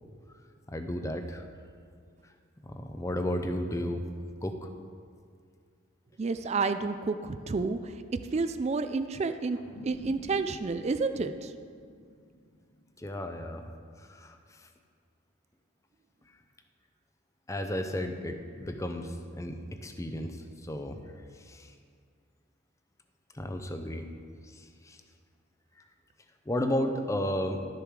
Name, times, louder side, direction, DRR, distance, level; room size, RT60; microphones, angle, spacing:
voice 1, 0.7-1.4 2.7-4.0 4.4-4.7 13.0-13.7 14.1-14.4 17.5-19.6 19.8-20.4 20.7-21.0 21.5-21.7 23.3-24.1 24.6-25.0 26.5-27.7, left 1 dB, 15° left, 6 dB, 0.6 m, -33 dB
voice 2, 6.2-7.9 8.3-9.6 9.8-11.5, right 4 dB, 30° right, 10 dB, 0.3 m, -30 dB
sound 1, 9.5-14.3, equal, 70° left, 1.5 m, -52 dB
12.5 x 6.8 x 4.8 m, 2.2 s
head